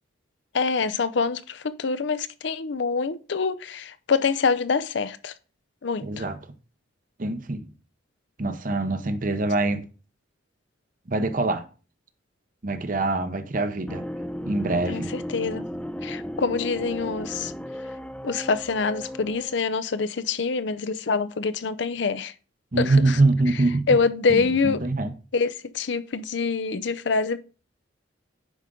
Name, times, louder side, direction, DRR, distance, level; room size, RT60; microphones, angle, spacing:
voice 1, 0.5-5.3 5.8-6.2 14.9-15.7 16.0-17.5 18.2-22.3 22.8-23.2 23.9-24.8 25.3-27.4, left 4 dB, 65° left, 0.5 m, -25 dB
voice 2, 6.0-6.4 7.2-7.7 8.4-9.8 11.1-11.6 12.6-14.0 14.4-15.1 22.7-24.0 24.3-25.1, right 2 dB, 45° right, 0.8 m, -24 dB
sound 1, 13.9-19.6, equal, 5° left, 0.4 m, -35 dB
9.9 x 5.0 x 3.7 m
head